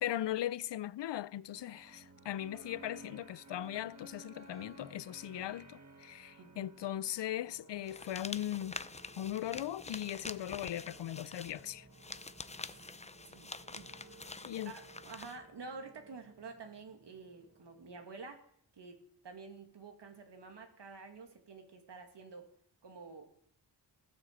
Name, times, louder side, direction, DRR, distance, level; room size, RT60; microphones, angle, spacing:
voice 1, 0.0-8.8 9.2-11.9 14.4-14.7, left 12 dB, 75° left, 0.6 m, -39 dB
sound 1, 1.5-18.1, right 3 dB, 40° right, 1.8 m, -57 dB
voice 2, 6.4-6.7 12.7-12.9 13.2-18.5 18.7-22.5 22.8-23.3, right 4 dB, 70° right, 2.6 m, -50 dB
sound 2, 7.9-15.4, left 3 dB, 15° left, 0.6 m, -47 dB
15.5 x 10.0 x 7.6 m
wide cardioid pair, 95°, 43 cm